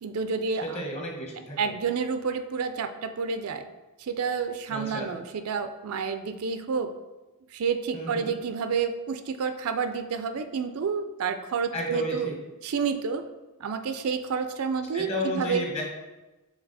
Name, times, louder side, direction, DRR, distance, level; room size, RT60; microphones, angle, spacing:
voice 1, 0.0-0.8 1.6-3.7 4.0-6.9 7.5-12.3 12.6-13.2 13.6-15.6, right 5 dB, 70° right, 9 dB, 0.4 m, -29 dB
voice 2, 0.6-1.7 4.7-5.1 7.9-8.3 11.7-12.3 14.9-15.8, left 1 dB, 30° left, -1 dB, 1.3 m, -32 dB
5.8 x 4.0 x 4.1 m, 1.1 s
head